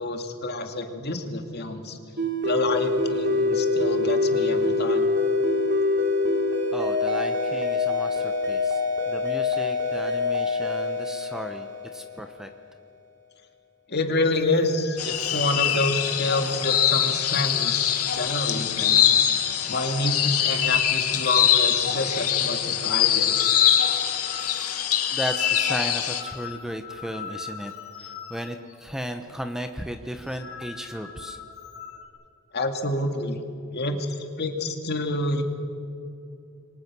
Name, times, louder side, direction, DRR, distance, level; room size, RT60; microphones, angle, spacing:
voice 1, 0.0-2.0 2.4-5.1 13.9-19.2 19.7-23.4 32.5-33.4 33.7-35.4, left 2 dB, 45° left, 5 dB, 2.3 m, -28 dB
sound 1, 2.2-12.5, left 3 dB, 50° right, 3.0 m, -25 dB
voice 2, 6.7-12.5 25.1-27.7 28.0-31.4, equal, ahead, 6 dB, 0.9 m, -35 dB
sound 2, 14.3-20.2 20.5-20.7 20.9-21.5 21.8-29.1 29.4-29.6 30.1-32.1, left 6 dB, 65° left, 3.2 m, -42 dB
sound 3, 15.0-26.2, left 10 dB, 85° left, 2.1 m, -23 dB
28.0 x 23.5 x 6.2 m, 2.6 s
head